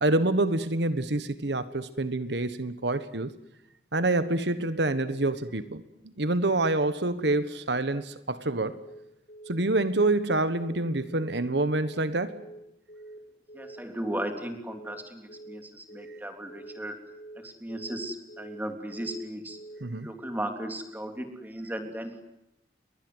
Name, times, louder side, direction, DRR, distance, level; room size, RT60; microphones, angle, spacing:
voice 1, 0.0-3.3 3.9-8.8 9.5-12.4 19.8-20.1, right 2 dB, 80° right, 1.4 m, -27 dB
Telephone, 8.7-9.0 9.3-9.6 9.9-10.2 10.5-10.8 11.1-11.4 11.7-12.0 12.3-12.6 12.9-13.2 13.5-13.8 14.1-14.4 14.7-15.0 15.3-15.6 15.9-16.2 16.5-16.8 17.1-17.4 17.7-18.0 18.3-18.6 18.9-19.2 19.5-19.8, right 2 dB, 60° left, 7.3 m, -46 dB
voice 2, 13.5-17.0 17.3-19.6 20.0-22.2, right 1 dB, 10° right, 3.4 m, -36 dB
29.5 x 22.5 x 8.0 m
head